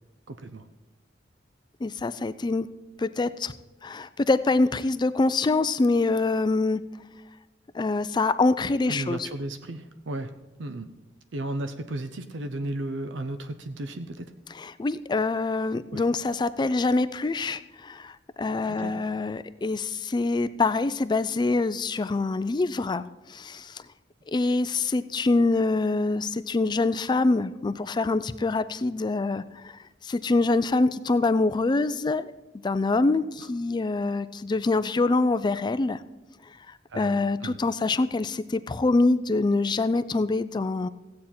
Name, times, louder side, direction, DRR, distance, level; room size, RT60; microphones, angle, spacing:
voice 1, 0.3-0.6 8.9-10.3 10.6-10.9 11.3-14.3 15.9-16.0 18.7-19.0 36.9-37.6, right 1 dB, 75° right, 9 dB, 0.6 m, -34 dB
voice 2, 1.8-2.7 3.0-3.5 3.8-6.8 7.7-9.3 14.6-23.0 23.3-23.8 24.3-32.3 32.6-36.0 36.9-40.9, left 3 dB, 25° left, 14 dB, 0.4 m, -25 dB
15.0 x 8.6 x 4.3 m, 1.1 s
head